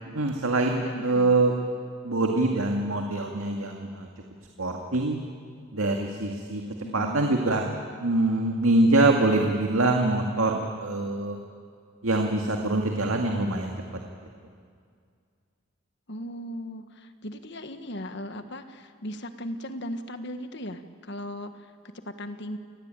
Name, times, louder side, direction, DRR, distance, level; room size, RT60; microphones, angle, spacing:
voice 1, 0.1-1.5 2.0-4.1 4.6-5.2 5.7-6.6 6.9-7.7 8.0-11.4 12.0-13.7, right 2 dB, 85° right, 2 dB, 2.1 m, -24 dB
voice 2, 0.8-1.3 6.8-7.2 16.1-21.5 22.0-22.6, equal, 55° left, 8 dB, 1.6 m, -37 dB
29.0 x 18.5 x 9.0 m, 2.2 s
head